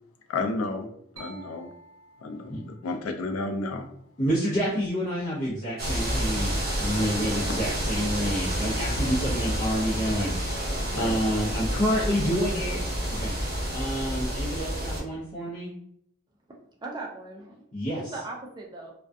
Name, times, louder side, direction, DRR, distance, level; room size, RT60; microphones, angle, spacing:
voice 1, 0.3-0.9 1.2-1.7 2.2-3.9 7.5-7.6 10.9-11.1, left 3 dB, 85° left, 5 dB, 0.4 m, -31 dB
sound 1, 1.2-4.8, right 3 dB, 65° right, 0.7 m, -52 dB
voice 2, 4.2-6.5 6.8-10.7 10.9-15.7 17.7-18.0, equal, 35° left, -9 dB, 0.6 m, -28 dB
sound 2, 5.8-15.0, equal, 50° right, 1.0 m, -29 dB
voice 3, 16.5-17.6 17.9-18.9, right 2 dB, 20° right, -1 dB, 0.4 m, -39 dB
2.3 x 2.2 x 2.5 m, 0.71 s
head